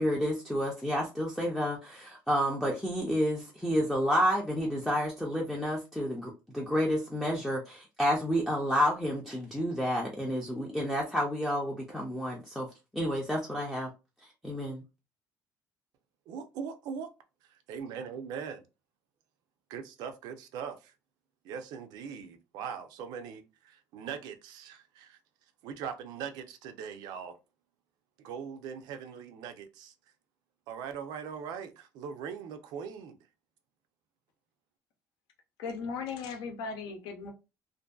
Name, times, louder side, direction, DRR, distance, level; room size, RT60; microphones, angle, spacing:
voice 1, 0.0-12.7 12.9-13.9 14.4-14.8, equal, ahead, 0.4 m, -30 dB
voice 2, 16.3-17.1 17.7-18.6 19.7-20.9 21.4-25.2 25.6-27.4 28.2-29.9 30.7-33.2, right 7 dB, 75° right, 0.5 m, -40 dB
voice 3, 35.6-37.3, left 5 dB, 85° left, 0.7 m, -37 dB
2.6 x 2.5 x 2.2 m
cardioid pair, 175°, 7 cm